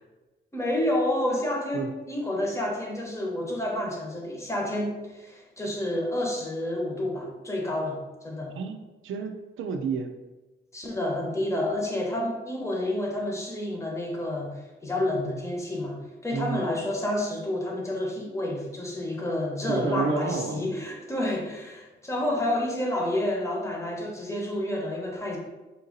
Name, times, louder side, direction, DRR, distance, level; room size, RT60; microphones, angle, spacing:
voice 1, 0.5-8.6 10.7-16.0 16.2-25.4, left 1 dB, 15° left, -1 dB, 0.9 m, -29 dB
voice 2, 9.0-10.1 16.3-16.6 19.6-20.6, right 5 dB, 85° right, 6 dB, 0.5 m, -30 dB
3.7 x 2.7 x 3.9 m, 1.1 s
cardioid pair, 105°, 20 cm